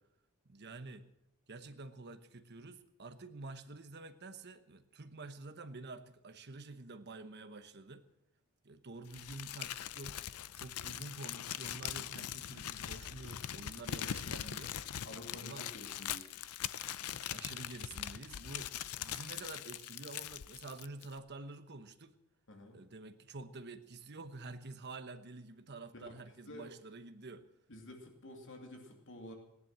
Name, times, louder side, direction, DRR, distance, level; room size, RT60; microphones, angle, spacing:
voice 1, 0.5-1.1 1.5-8.1 8.6-10.2 10.5-14.8 15.4-15.7 17.0-18.7 19.0-22.2 22.7-27.5, right 3 dB, 50° right, 10 dB, 1.1 m, -49 dB
Crumpling crinkling, 9.1-21.2, left 10 dB, 80° left, 0.6 m, -42 dB
voice 2, 15.0-16.3 22.5-22.8 25.9-26.2 26.4-26.7 27.7-29.3, left 1 dB, 60° left, 2 dB, 2.7 m, -50 dB
17.0 x 11.0 x 7.5 m, 0.81 s
head